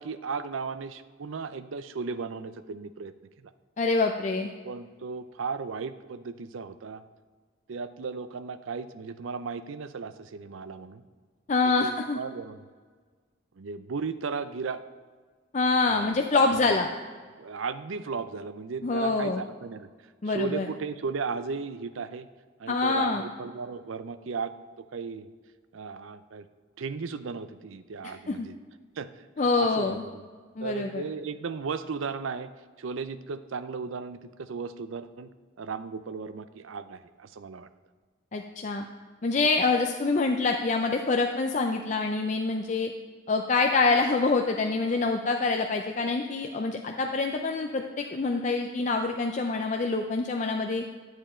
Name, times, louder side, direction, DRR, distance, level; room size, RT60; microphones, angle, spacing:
voice 1, 0.0-3.1 4.6-7.0 7.7-11.0 11.6-12.6 13.6-14.8 15.9-16.2 16.6-16.7 17.4-19.9 20.3-22.3 22.6-25.3 25.7-26.5 26.8-28.6 29.0-29.1 29.4-30.2 30.6-32.5 32.8-35.3 35.6-37.7, right 5 dB, 80° right, 12 dB, 0.5 m, -35 dB
voice 2, 3.8-4.5 11.5-12.2 15.5-16.9 18.8-19.4 20.2-20.7 22.7-23.2 28.3-28.5 29.4-30.0 30.6-31.0 38.3-38.9 39.2-42.9 43.3-50.8, left 3 dB, 35° left, 3 dB, 0.4 m, -26 dB
11.0 x 7.6 x 4.3 m, 1.5 s
head